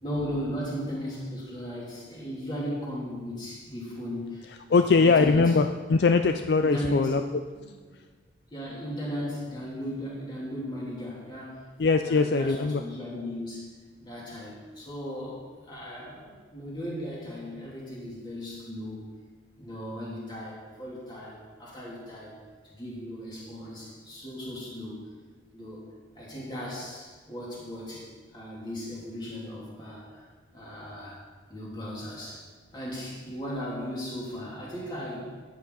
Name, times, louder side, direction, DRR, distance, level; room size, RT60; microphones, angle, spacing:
voice 1, 0.0-5.5 6.6-7.1 7.5-7.7 8.5-11.5 12.0-13.7 14.0-19.0 19.6-22.3 22.6-25.0 25.5-25.8 26.1-28.1 28.3-30.2 30.5-31.2 31.5-32.4 32.7-35.3, equal, 25° left, -6 dB, 3.2 m, -36 dB
voice 2, 4.7-7.2 11.8-12.8, left 4 dB, 60° left, 7 dB, 0.4 m, -21 dB
14.0 x 8.9 x 4.1 m, 1.4 s
head